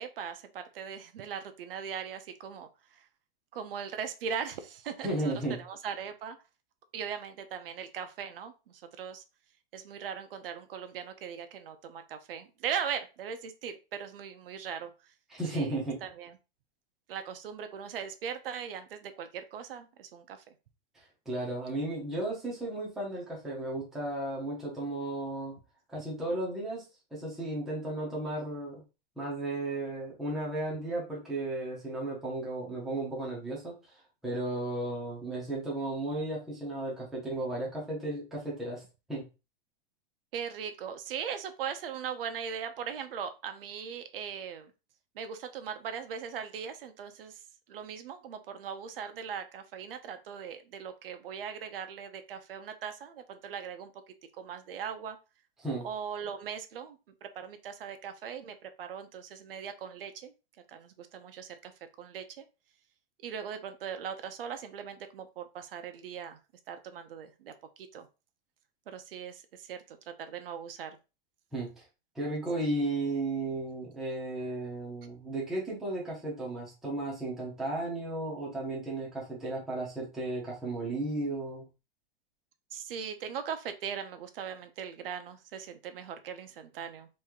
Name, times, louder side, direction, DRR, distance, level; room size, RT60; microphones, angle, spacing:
voice 1, 0.0-3.1 3.5-5.3 5.6-6.4 6.9-9.2 9.7-14.9 15.5-16.4 17.1-20.5 40.3-44.7 45.2-47.4 47.7-53.9 54.4-55.2 55.8-60.3 60.7-61.7 62.0-62.4 63.2-66.4 66.7-68.1 68.9-71.0 82.7-87.1, right 7 dB, 70° right, 8 dB, 0.6 m, -39 dB
voice 2, 5.0-5.6 15.3-16.0 20.9-25.6 25.9-26.8 27.1-28.8 29.2-33.9 34.2-38.8 39.1-39.3 55.6-55.9 71.5-71.8 72.1-81.6, right 2 dB, ahead, -5 dB, 0.6 m, -34 dB
3.1 x 2.7 x 3.5 m, 0.29 s
supercardioid pair, 170°, 29 cm